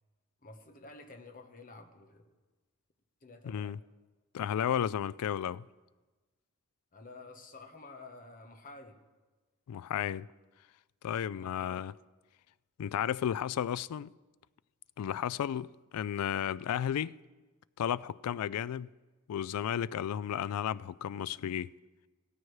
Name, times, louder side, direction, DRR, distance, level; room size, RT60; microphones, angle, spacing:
voice 1, 0.4-2.3 3.2-3.8 6.9-9.0 11.3-11.9, left 3 dB, 40° left, 1.1 m, -51 dB
voice 2, 3.4-3.8 4.3-5.7 9.7-10.3 11.0-11.9 12.8-14.1 15.0-17.1 17.8-18.9 19.3-21.7, left 9 dB, 90° left, 0.3 m, -33 dB
16.5 x 14.0 x 3.2 m
head